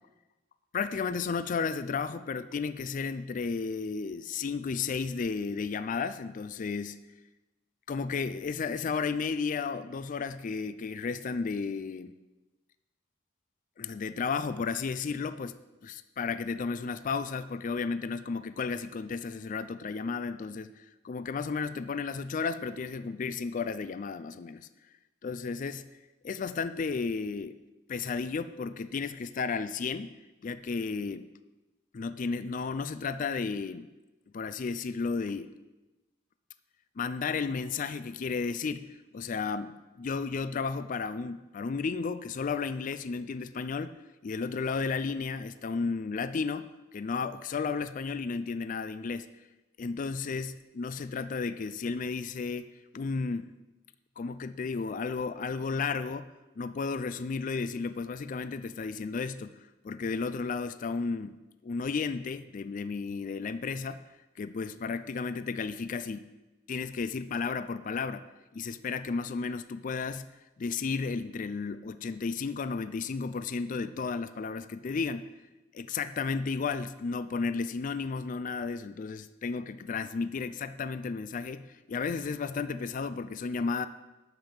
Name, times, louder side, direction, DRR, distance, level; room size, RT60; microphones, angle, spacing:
voice 1, 0.7-7.0 7.9-12.1 13.8-15.5 15.8-24.7 25.2-25.8 26.2-27.6 27.9-30.1 30.4-31.3 31.9-33.9 34.3-35.5 37.0-43.9 44.2-49.3 49.8-53.5 54.2-56.3 56.6-64.0 64.4-66.3 66.7-68.3 68.5-70.3 70.6-75.3 75.7-83.9, left 5 dB, 40° left, 13 dB, 0.4 m, -33 dB
12.0 x 5.2 x 7.2 m, 1.1 s
head